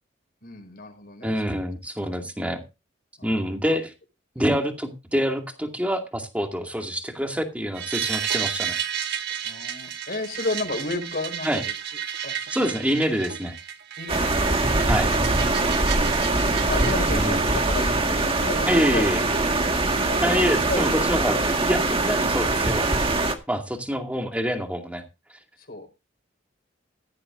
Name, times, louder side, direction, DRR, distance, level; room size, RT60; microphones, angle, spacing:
voice 1, 0.4-1.3 2.0-2.2 3.2-3.3 3.6-3.8 4.4-4.6 9.4-11.5 12.2-12.8 14.0-14.9 15.9-19.1 20.0-20.2 20.6-20.9 25.7-25.9, left 2 dB, 50° left, 5 dB, 4.5 m, -33 dB
voice 2, 1.2-2.6 3.2-3.9 4.4-8.8 11.4-11.6 12.5-13.5 14.9-15.1 17.1-17.4 18.7-19.2 20.2-22.9 23.5-25.0, equal, 5° right, 3 dB, 2.3 m, -26 dB
sound 1, 7.8-16.9, right 9 dB, 55° right, 1.6 m, -32 dB
sound 2, 14.1-23.3, right 2 dB, 30° right, 1.8 m, -23 dB
16.0 x 13.0 x 2.6 m, 0.26 s
head